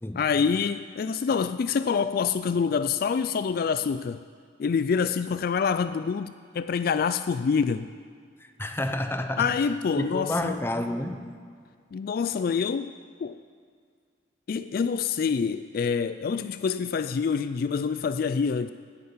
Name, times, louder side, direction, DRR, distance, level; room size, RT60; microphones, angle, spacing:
voice 1, 0.2-4.2 4.6-7.9 9.4-10.6 11.9-12.9 13.2-13.4 14.5-18.7, left 6 dB, 55° left, 12 dB, 0.3 m, -26 dB
voice 2, 8.4-9.5 10.0-11.4, left 1 dB, 15° left, 7 dB, 0.7 m, -30 dB
9.8 x 9.4 x 9.5 m, 2.1 s
head